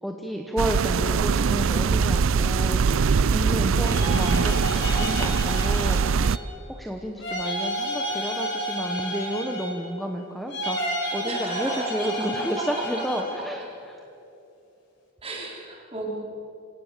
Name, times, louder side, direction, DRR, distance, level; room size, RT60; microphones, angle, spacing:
voice 1, 0.0-6.3 6.7-13.6 13.9-14.0, equal, ahead, 2 dB, 1.0 m, -31 dB
sound 1, 0.6-6.4, right 5 dB, 65° right, 0.4 m, -22 dB
sound 2, 3.7-6.6 7.2-10.0 10.5-13.4, equal, 55° left, 4.8 m, -31 dB
voice 2, 11.3-13.5 15.2-16.1, right 2 dB, 25° right, -2 dB, 4.0 m, -34 dB
26.5 x 17.5 x 6.7 m, 2.8 s
head